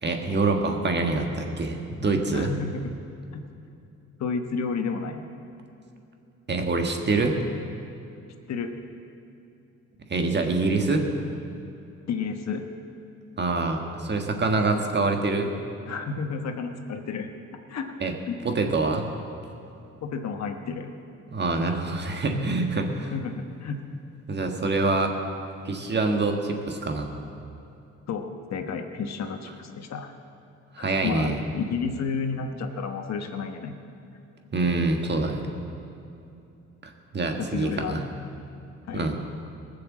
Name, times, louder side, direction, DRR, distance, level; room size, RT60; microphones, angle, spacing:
voice 1, 0.0-2.5 6.5-7.4 10.1-11.1 13.4-15.5 18.0-18.1 18.4-19.1 21.3-23.1 24.3-25.1 25.6-27.1 30.7-31.4 34.5-35.4 36.8-38.0 38.9-39.2, right 3 dB, 35° right, 3 dB, 1.6 m, -25 dB
voice 2, 2.3-2.8 3.3-3.4 4.2-5.3 8.5-8.7 12.1-12.6 15.9-17.3 17.7-17.9 18.3-18.4 20.0-20.9 23.1-23.8 28.1-30.1 30.8-33.8 37.4-38.0 38.9-39.0, left 5 dB, 60° left, 5 dB, 1.2 m, -31 dB
18.0 x 6.9 x 7.4 m, 2.7 s
cardioid pair, 90°, 30 cm